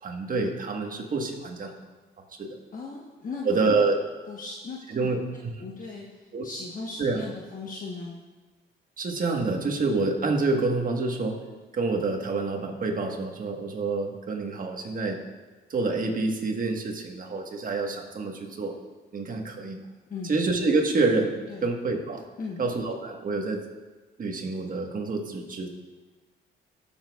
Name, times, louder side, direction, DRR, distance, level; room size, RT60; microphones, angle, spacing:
voice 1, 0.0-1.8 2.4-2.6 3.4-4.0 4.9-5.2 6.3-6.4 7.0-7.2 9.0-11.4 11.7-15.2 15.7-18.8 19.1-19.9 20.2-21.3 21.6-22.2 22.6-23.6 24.2-25.7, right 3 dB, 45° right, 2 dB, 1.4 m, -27 dB
voice 2, 2.7-3.8 4.3-4.9 5.6-6.0 6.4-8.2 20.1-20.3 21.5-21.7 22.4-22.6, left 3 dB, 40° left, -3 dB, 1.1 m, -37 dB
17.0 x 7.1 x 2.4 m, 1.3 s
cardioid pair, 90°, 20 cm